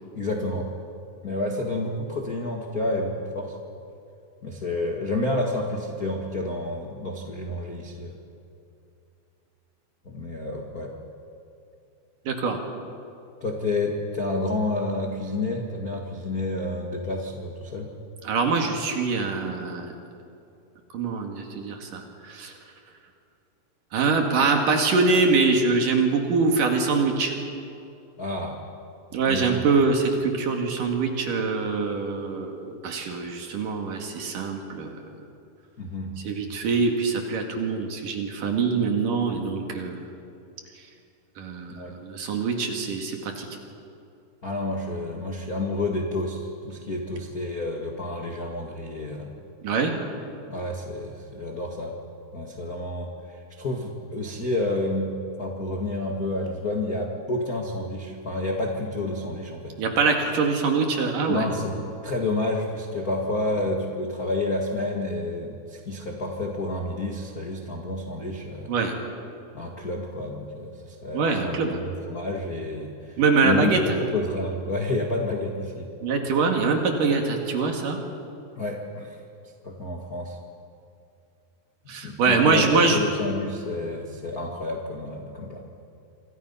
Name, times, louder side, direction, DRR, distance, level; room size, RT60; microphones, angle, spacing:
voice 1, 0.1-0.7 1.2-3.6 4.4-8.2 10.0-10.9 13.4-17.9 28.2-28.6 29.2-29.6 35.8-36.1 41.7-41.9 44.4-49.3 50.5-51.9 52.3-59.7 61.3-68.7 69.5-75.9 78.6-79.2 79.6-80.4 82.0-85.6, left 2 dB, 50° left, 0 dB, 1.0 m, -30 dB
voice 2, 12.3-12.6 18.2-19.9 20.9-22.5 23.9-27.3 29.1-35.0 36.2-40.1 41.4-43.5 49.6-49.9 59.8-61.5 68.7-68.9 71.1-71.8 73.2-73.8 76.0-78.0 81.9-83.0, right 4 dB, 55° right, 3 dB, 3.3 m, -24 dB
26.5 x 26.5 x 5.7 m, 2.6 s
omnidirectional pair, 5.1 m